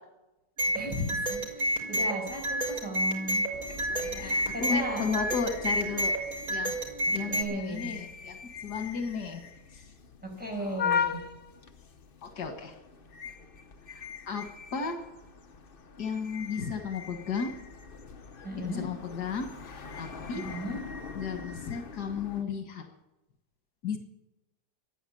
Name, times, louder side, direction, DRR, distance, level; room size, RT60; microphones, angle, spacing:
sound 1, 0.6-7.4, right 1 dB, 60° right, 5.3 m, -30 dB
voice 1, 0.7-3.5 3.9-5.0 7.3-7.9 10.2-11.2 18.4-18.9 20.3-20.8, equal, 5° right, -1 dB, 5.7 m, -36 dB
sound 2, 3.5-22.4, left 7 dB, 40° left, 0.9 m, -40 dB
voice 2, 3.9-6.2 6.5-6.8 7.1-9.4 9.7-9.8 10.6-10.9 12.2-12.7 13.9-14.5 14.7-15.0 16.0-17.5 18.6-20.4 21.2-22.9 23.8-24.0, left 5 dB, 85° left, 5 dB, 2.1 m, -34 dB
14.0 x 10.0 x 10.0 m, 1.0 s
omnidirectional pair, 1.7 m